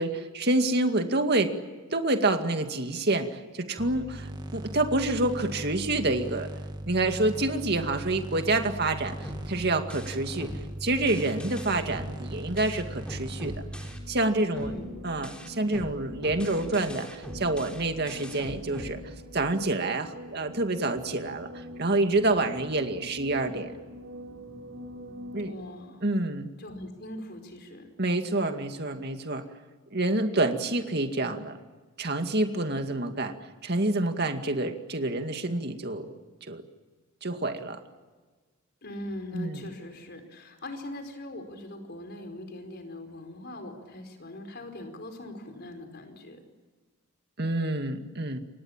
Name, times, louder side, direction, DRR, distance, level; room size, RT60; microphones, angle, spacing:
voice 1, 0.0-1.5 1.9-6.5 6.9-10.5 10.8-13.6 14.1-14.7 15.0-19.0 19.3-23.7 25.3-25.6 26.0-26.5 28.0-29.5 29.9-31.6 32.0-33.3 33.6-36.1 36.5-36.6 37.2-37.8 39.3-39.6 47.4-48.4, right 2 dB, 50° right, 6 dB, 2.2 m, -27 dB
sound 1, 3.8-13.9, right 1 dB, 20° right, 2.1 m, -39 dB
sound 2, 9.2-14.3 14.6-19.6, equal, 5° left, 3.6 m, -43 dB
sound 3, 13.0-25.5, equal, 65° right, 8.0 m, -45 dB
voice 2, 14.5-14.8 25.4-26.0 26.6-27.9 38.8-46.4, left 1 dB, 50° left, 6 dB, 4.9 m, -41 dB
29.0 x 24.5 x 7.4 m, 1.4 s
head